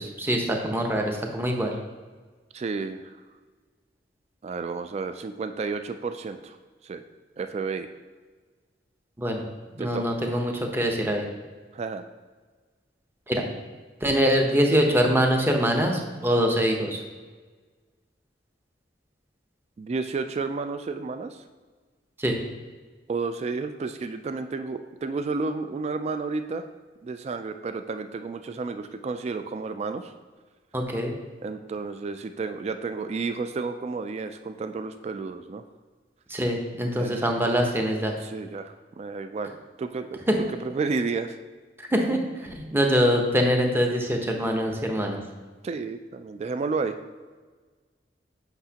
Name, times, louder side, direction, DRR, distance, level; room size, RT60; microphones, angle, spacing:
voice 1, 0.0-1.7 9.2-9.4 9.7-11.2 13.3-13.4 14.0-17.0 22.2-22.4 30.7-31.1 36.3-38.1 40.3-40.4 41.9-45.2, equal, 15° right, 2 dB, 0.8 m, -24 dB
voice 2, 2.5-3.1 4.4-6.6 6.8-7.0 7.4-7.9 9.8-10.2 11.7-12.0 19.8-21.4 23.1-26.6 27.0-30.1 31.4-35.6 37.0-37.2 38.2-39.5 39.8-40.2 40.6-41.4 45.6-46.9, right 4 dB, 35° right, 9 dB, 0.3 m, -31 dB
7.9 x 5.7 x 2.8 m, 1.4 s
head